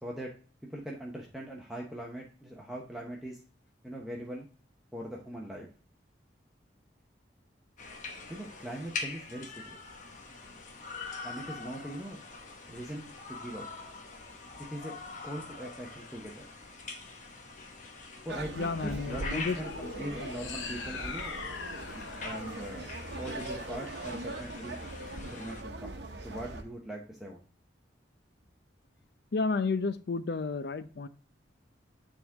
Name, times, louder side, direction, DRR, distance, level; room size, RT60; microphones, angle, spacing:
voice 1, 0.0-0.3 0.7-3.4 3.8-4.5 4.9-5.7 8.3-9.8 11.2-12.2 12.7-13.7 14.6-15.0 15.2-16.4 18.2-21.4 21.9-24.8 25.2-27.4, right 1 dB, ahead, -3 dB, 0.8 m, -41 dB
sound 1, 7.8-25.6, left 3 dB, 40° left, 1.0 m, -44 dB
sound 2, 18.3-26.6, right 2 dB, 60° right, 0.9 m, -41 dB
voice 2, 18.5-19.6 29.3-31.1, left 4 dB, 55° left, 13 dB, 0.5 m, -32 dB
sound 3, 19.5-23.9, left 4 dB, 85° left, 0.9 m, -42 dB
9.0 x 3.7 x 3.4 m, 0.40 s
head